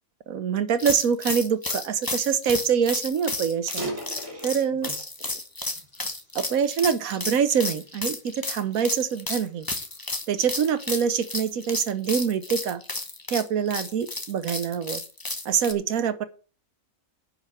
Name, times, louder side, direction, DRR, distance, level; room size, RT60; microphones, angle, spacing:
voice 1, 0.3-3.8 4.4-4.9 6.3-9.7 10.3-12.8 13.3-15.0 15.4-16.2, right 7 dB, 85° right, 10 dB, 1.4 m, -25 dB
sound 1, 0.8-15.7, left 2 dB, 15° left, 1.1 m, -32 dB
sound 2, 2.9-3.0 3.5-5.2 5.7-7.0 7.6-7.8 8.5-10.5, right 1 dB, 55° right, 4.0 m, -38 dB
10.0 x 5.7 x 7.4 m, 0.36 s
omnidirectional pair, 1.4 m